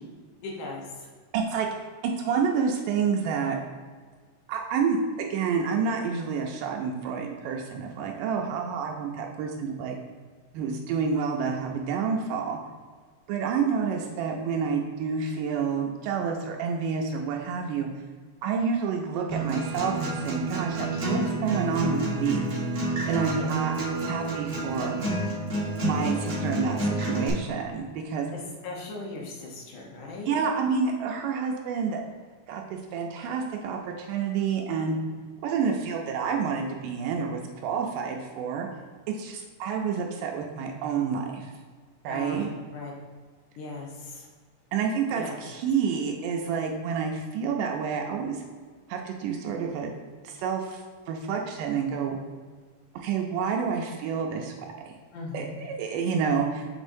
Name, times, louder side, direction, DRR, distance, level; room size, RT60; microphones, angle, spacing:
voice 1, 0.4-1.1 23.3-23.6 28.3-30.4 42.1-42.9 43.6-44.3 45.1-45.4 55.1-55.5, left 2 dB, 75° left, -2 dB, 2.5 m, -38 dB
voice 2, 1.3-1.7 2.2-3.6 4.5-9.9 10.5-12.6 13.3-17.9 18.4-22.4 23.1-23.8 24.1-25.1 25.5-28.3 30.3-32.0 32.5-35.0 35.4-38.7 39.1-41.5 42.0-42.5 44.7-48.4 48.9-49.9 50.2-52.2 52.9-54.5 54.9-55.0 55.3-56.7, right 6 dB, 85° right, 1 dB, 2.2 m, -29 dB
Acoustic guitar, 19.3-27.3, right 1 dB, 55° right, 0.7 m, -29 dB
6.2 x 6.1 x 2.6 m, 1.5 s
omnidirectional pair, 3.8 m